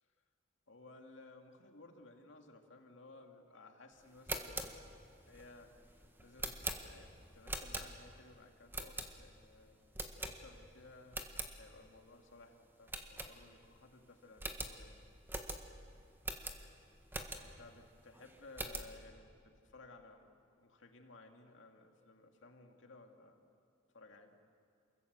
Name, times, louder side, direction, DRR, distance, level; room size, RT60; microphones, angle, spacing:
voice 1, 0.7-4.8 5.3-5.8 6.2-9.8 10.2-15.0 17.4-20.3 20.5-23.4 23.9-24.4, left 2 dB, 65° left, 4 dB, 2.4 m, -58 dB
sound 1, 4.1-8.2 8.7-9.5 9.9-10.7 11.0-11.5 12.0-12.1 12.3-12.4 12.9-13.8 14.0-14.1 14.4-17.7 18.1-19.0, right 2 dB, 10° right, 1.6 m, -43 dB
28.5 x 22.0 x 8.1 m, 2.5 s
head